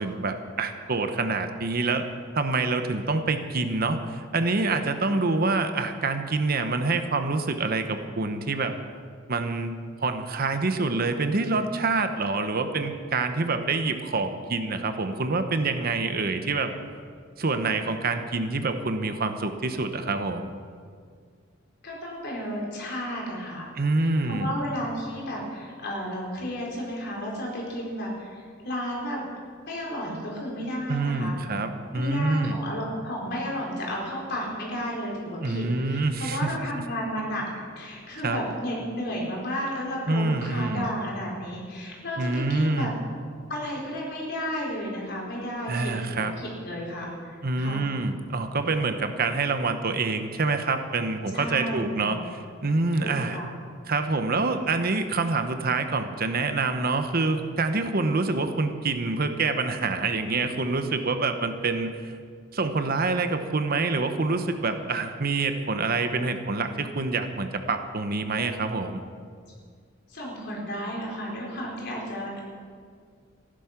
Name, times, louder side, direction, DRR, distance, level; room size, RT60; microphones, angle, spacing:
voice 1, 0.0-2.1 2.3-8.7 9.3-9.7 10.0-16.7 17.4-20.5 23.8-24.5 30.9-32.6 35.4-36.5 38.2-38.4 40.1-40.9 42.2-42.9 45.7-46.3 47.4-53.4 53.9-62.1 62.5-69.0, right 3 dB, 50° right, 8 dB, 0.9 m, -26 dB
voice 2, 21.8-23.6 24.0-29.2 29.6-31.4 31.9-37.4 37.7-42.9 43.5-47.9 51.3-52.3 53.0-53.5 70.1-72.4, equal, 55° left, -3 dB, 4.4 m, -33 dB
15.0 x 11.5 x 5.9 m, 2.1 s
head